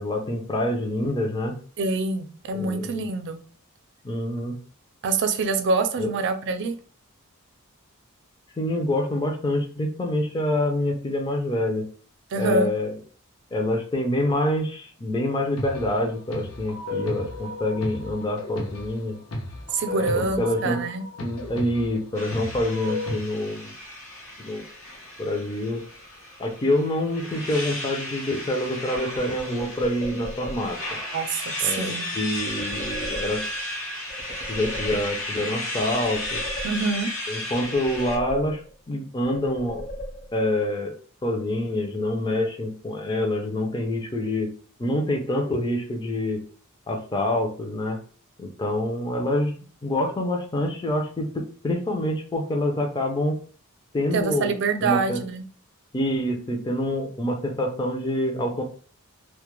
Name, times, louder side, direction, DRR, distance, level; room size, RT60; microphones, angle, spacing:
voice 1, 0.0-1.6 2.5-3.1 4.0-4.5 6.0-6.1 8.6-11.9 12.4-12.9 13.5-19.2 19.9-20.8 21.2-23.7 24.4-24.6 25.2-25.8 26.4-30.8 31.6-33.4 34.5-36.4 37.3-39.9 40.3-41.0 41.2-44.5 44.8-46.4 46.9-48.0 48.4-53.4 53.9-55.2 55.9-58.6, left 1 dB, 20° left, 2 dB, 0.4 m, -26 dB
voice 2, 1.8-3.4 5.0-6.8 12.3-12.7 19.7-21.0 31.1-32.1 36.6-37.1 54.1-55.4, right 4 dB, 55° right, 7 dB, 0.4 m, -25 dB
sound 1, 15.6-23.2, left 2 dB, 90° left, 0.7 m, -34 dB
sound 2, 22.1-38.2, left 1 dB, 70° left, 0.9 m, -34 dB
sound 3, 28.9-30.9 32.4-33.7 34.1-35.4 35.8-37.2 37.5-38.9 39.2-40.6, equal, 40° left, 0.7 m, -38 dB
2.2 x 2.0 x 2.9 m, 0.42 s
head